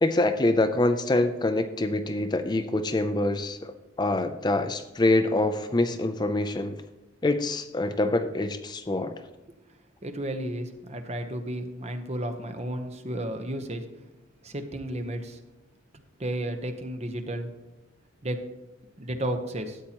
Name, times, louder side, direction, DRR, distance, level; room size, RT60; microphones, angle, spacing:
voice 1, 0.0-6.8 7.2-9.1, left 2 dB, 20° left, 9 dB, 0.4 m, -25 dB
voice 2, 10.0-13.9 14.4-15.4 16.2-17.5 18.2-18.4 19.0-19.8, right 1 dB, 35° right, 6 dB, 0.9 m, -32 dB
13.0 x 8.5 x 2.9 m, 1.0 s
head